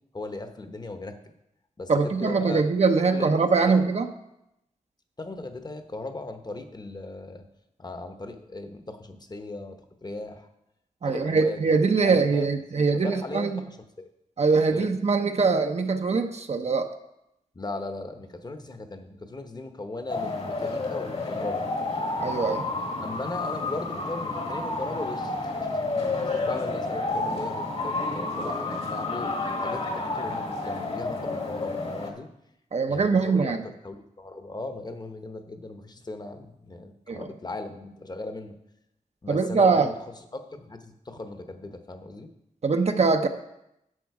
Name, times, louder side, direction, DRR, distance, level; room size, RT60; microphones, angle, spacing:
voice 1, 0.1-1.2 1.8-2.7 3.1-3.3 3.6-3.8 5.2-7.4 7.8-10.5 11.0-11.6 12.0-12.5 12.7-14.1 14.7-14.9 17.5-21.6 23.0-25.7 26.2-29.3 29.6-32.3 32.9-38.5 39.2-39.9 40.3-42.3, left 2 dB, 30° left, 7 dB, 1.0 m, -38 dB
voice 2, 1.9-4.1 11.0-13.6 14.4-16.9 22.2-22.6 32.7-33.6 37.1-37.3 39.3-39.9 42.6-43.3, right 4 dB, 50° right, 6 dB, 0.7 m, -22 dB
sound 1, 20.1-32.1, left 3 dB, 45° left, 1.5 m, -30 dB
11.0 x 7.5 x 4.8 m, 0.85 s
wide cardioid pair, 90°, 14 cm